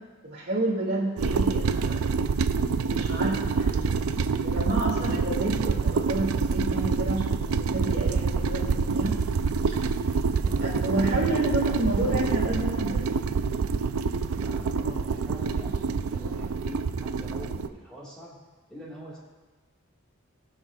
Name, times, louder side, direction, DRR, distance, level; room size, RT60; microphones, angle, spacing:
voice 1, 0.2-2.2 2.8-4.2 4.4-9.2 10.6-13.0, right 1 dB, 50° right, -3 dB, 2.3 m, -30 dB
sound 1, 1.2-17.7, right 5 dB, 80° right, 0.4 m, -26 dB
voice 2, 14.3-18.4 18.7-19.2, equal, 5° left, -7 dB, 1.7 m, -44 dB
19.0 x 6.4 x 2.4 m, 1.3 s
head